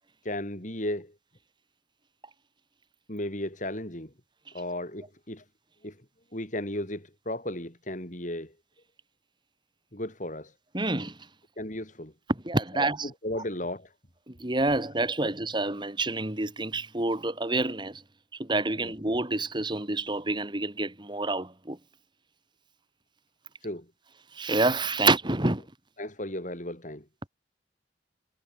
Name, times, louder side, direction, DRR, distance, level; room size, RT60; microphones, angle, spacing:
voice 1, 0.2-1.2 3.1-4.1 4.5-5.5 5.8-6.0 6.3-8.6 9.9-10.6 11.6-12.1 12.7-13.9 18.8-18.9 23.6-23.9 26.0-27.1, left 1 dB, 40° left, 6.0 m, -35 dB
voice 2, 10.7-11.2 12.3-13.1 14.3-18.0 18.4-21.8 24.3-25.6, right 2 dB, 25° right, 2.0 m, -28 dB
head